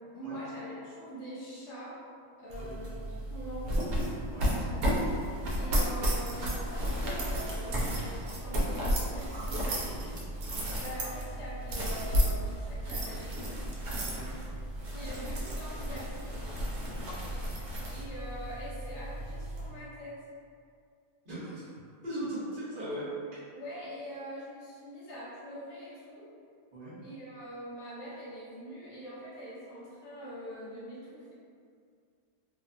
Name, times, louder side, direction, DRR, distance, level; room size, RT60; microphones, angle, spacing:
voice 1, 0.1-2.0 2.4-4.1 5.6-9.7 10.8-13.7 14.9-16.4 17.9-20.2 23.5-26.3 27.0-31.3, equal, 80° left, -8 dB, 1.2 m, -43 dB
sound 1, 2.5-19.7, equal, 70° right, 0.9 m, -33 dB
Zipper (clothing), 4.8-5.6 6.2-6.7 7.8-8.5 9.0-9.5, right 1 dB, 5° left, 0.6 m, -52 dB
voice 2, 21.2-23.1 26.7-26.9, right 1 dB, 40° right, -11 dB, 0.9 m, -39 dB
2.7 x 2.1 x 2.4 m, 2.3 s
omnidirectional pair, 1.8 m